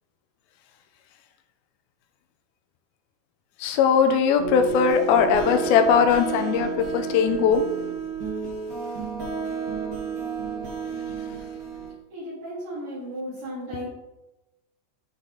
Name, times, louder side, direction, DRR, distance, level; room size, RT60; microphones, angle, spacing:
voice 1, 3.6-7.6, left 6 dB, 80° left, 7 dB, 2.5 m, -20 dB
sound 1, 4.4-11.9, right 5 dB, 75° right, 0.8 m, -31 dB
voice 2, 12.1-13.9, equal, 55° right, -13 dB, 4.6 m, -35 dB
9.9 x 5.2 x 3.9 m, 1.0 s
omnidirectional pair, 4.5 m